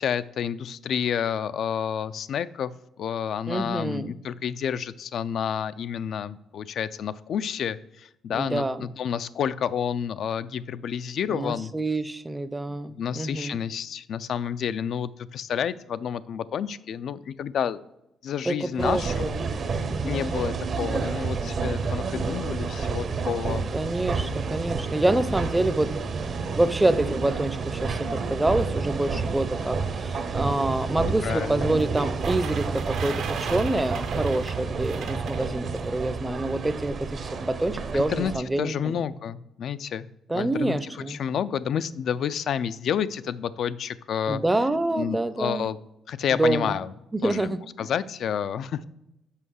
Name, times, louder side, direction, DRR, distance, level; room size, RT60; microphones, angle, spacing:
voice 1, 0.0-2.7 3.0-11.7 12.7-17.8 18.2-19.3 20.0-23.7 31.0-31.7 37.9-38.3 38.6-44.4 44.9-45.8 46.1-46.9 47.2-47.5 47.8-48.9, left 8 dB, 65° left, 15 dB, 0.3 m, -30 dB
voice 2, 3.5-4.1 8.3-8.8 11.3-13.6 18.5-19.4 19.9-20.5 23.7-26.0 26.5-39.0 40.3-41.2 44.3-45.7 46.3-46.8 47.1-47.6, right 2 dB, 15° right, 14 dB, 0.5 m, -27 dB
sound 1, 18.8-38.4, right 4 dB, 50° right, 0.8 m, -30 dB
sound 2, 31.8-35.9, right 6 dB, 75° right, 0.9 m, -37 dB
5.6 x 5.4 x 6.3 m, 0.87 s
cardioid pair, 90°, 0 cm